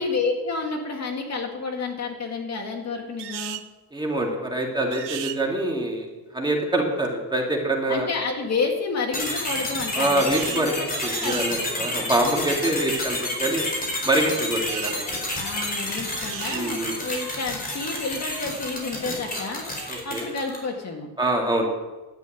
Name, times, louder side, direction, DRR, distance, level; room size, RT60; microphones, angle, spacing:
voice 1, 0.0-3.6 7.9-12.1 15.4-19.6 20.0-21.1, left 4 dB, 40° left, 2 dB, 2.2 m, -30 dB
sound 1, 3.2-3.7 4.9-5.4 10.2-10.7 11.1-11.5 14.5-15.0 16.1-16.7, right 13 dB, 75° right, 0.9 m, -35 dB
voice 2, 3.9-8.1 10.0-13.6 14.0-15.0 16.5-17.0 19.9-20.2 21.2-21.7, right 1 dB, 10° right, 0 dB, 2.4 m, -25 dB
sound 2, 9.1-20.7, left 1 dB, 20° left, 4.8 m, -30 dB
12.0 x 9.2 x 9.2 m, 1.2 s
cardioid pair, 145°, 42 cm